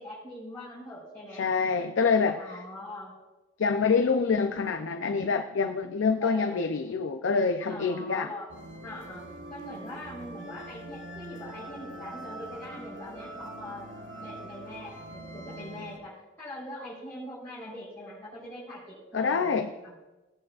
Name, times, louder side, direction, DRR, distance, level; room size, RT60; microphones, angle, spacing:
voice 1, 0.0-1.4 2.4-3.1 6.2-6.7 7.7-8.5 8.8-9.2 9.5-13.9 14.2-16.1 16.4-19.5 19.8-19.9, left 1 dB, 10° left, -11 dB, 3.9 m, -42 dB
voice 2, 1.3-2.6 3.6-8.3 19.1-19.7, left 5 dB, 90° left, 6 dB, 0.5 m, -26 dB
sound 1, 8.5-16.0, right 1 dB, 75° right, 1.2 m, -43 dB
16.5 x 8.7 x 2.4 m, 1.1 s
head